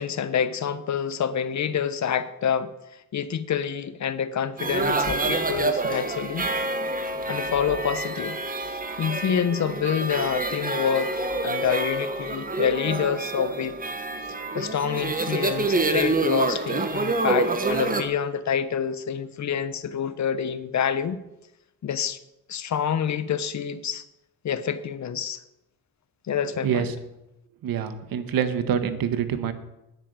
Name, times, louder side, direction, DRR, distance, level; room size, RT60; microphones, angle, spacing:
voice 1, 0.0-2.7 3.1-6.5 7.3-13.8 14.5-21.2 21.8-22.2 22.5-24.0 24.4-25.4 26.3-26.9, left 8 dB, 45° left, 1.1 m, -27 dB
sound 1, 4.6-18.0, right 2 dB, 20° right, 1.4 m, -27 dB
voice 2, 26.6-26.9 27.6-29.5, right 8 dB, 65° right, 1.6 m, -26 dB
9.9 x 8.3 x 9.0 m
cardioid pair, 90°, 38 cm